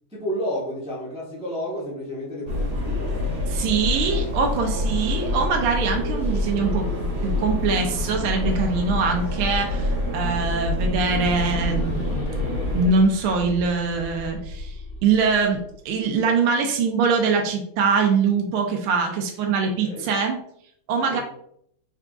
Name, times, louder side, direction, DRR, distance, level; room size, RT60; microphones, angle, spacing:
voice 1, 0.1-3.2 4.7-4.9 10.2-10.5 19.8-20.1 21.1-21.2, equal, 5° right, -6 dB, 0.5 m, -31 dB
sound 1, 2.5-12.9, left 2 dB, 40° right, 1.4 m, -26 dB
voice 2, 3.5-12.0 12.6-14.8 15.0-20.4 20.9-21.2, right 5 dB, 80° right, 2 dB, 1.5 m, -23 dB
sound 2, 6.1-9.0 9.5-9.6 11.0-16.0, equal, 75° left, 2.0 m, -37 dB
4.5 x 3.6 x 2.4 m, 0.70 s
omnidirectional pair, 2.4 m